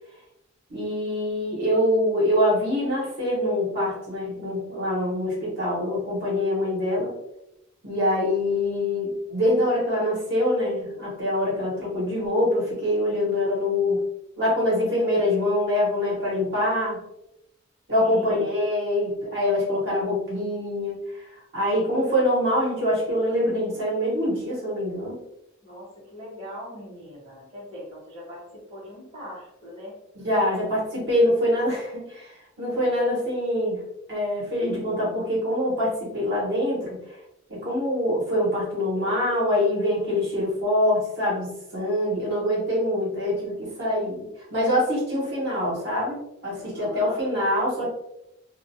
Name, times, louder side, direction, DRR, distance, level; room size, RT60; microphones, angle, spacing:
voice 1, 0.7-7.1 7.8-14.0 14.4-17.0 17.9-21.2 21.5-25.2 30.1-33.8 34.1-37.0 37.5-44.2 44.5-46.2 46.4-47.9, left 1 dB, 60° right, -5 dB, 1.0 m, -24 dB
voice 2, 17.9-18.5 25.6-29.9 30.2-30.3 46.6-47.3, equal, 35° right, -7 dB, 1.0 m, -41 dB
2.3 x 2.2 x 2.6 m, 0.84 s
head